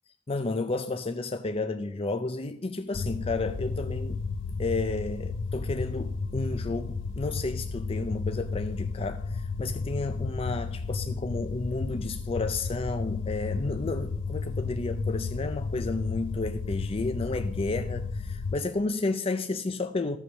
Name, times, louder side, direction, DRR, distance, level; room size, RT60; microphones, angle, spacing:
voice 1, 0.3-4.2 4.6-20.2, left 3 dB, 30° left, 0.5 m, -32 dB
sound 1, 2.9-18.5, left 4 dB, 80° left, 0.7 m, -33 dB
14.0 x 5.7 x 6.2 m
head